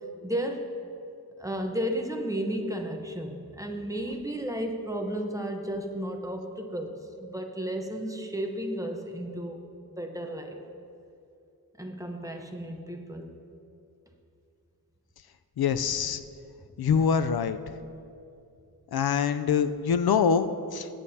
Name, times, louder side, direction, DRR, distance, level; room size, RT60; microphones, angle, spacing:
voice 1, 0.2-0.7 1.4-9.6 10.0-10.6 11.8-13.3, right 1 dB, 10° right, 3 dB, 0.9 m, -33 dB
voice 2, 15.6-16.2 16.8-17.6 18.9-20.9, left 6 dB, 80° left, 10 dB, 0.5 m, -24 dB
22.0 x 8.8 x 2.8 m, 2.6 s
wide cardioid pair, 135°, 37 cm